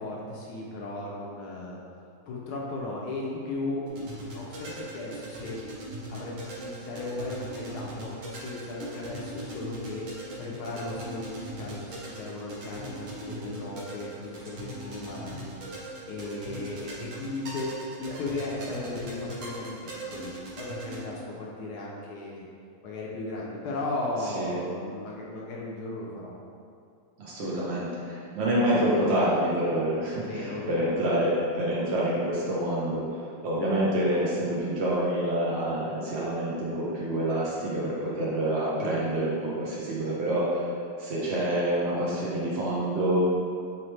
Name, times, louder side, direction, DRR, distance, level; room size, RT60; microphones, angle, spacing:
voice 1, 0.0-1.8 2.3-5.6 6.1-10.0 10.4-15.5 16.0-22.5 22.8-26.3 30.2-30.9, left 2 dB, 70° left, -3 dB, 1.0 m, -36 dB
sound 1, 3.9-21.0, right 1 dB, 60° right, 0.9 m, -40 dB
voice 2, 27.2-33.0 33.4-40.7 41.0-43.2, right 1 dB, 90° right, -7 dB, 0.5 m, -27 dB
4.0 x 3.2 x 3.1 m, 2.4 s
omnidirectional pair, 2.0 m